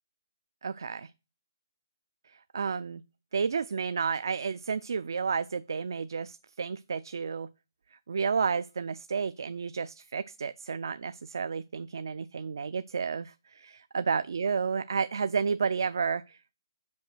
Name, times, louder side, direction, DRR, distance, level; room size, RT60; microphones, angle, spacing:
voice 1, 0.6-1.1 2.3-3.0 3.3-7.5 8.1-16.4, right 5 dB, 70° right, 0.3 m, -31 dB
5.3 x 4.7 x 6.1 m
hypercardioid pair, 170°, 2 cm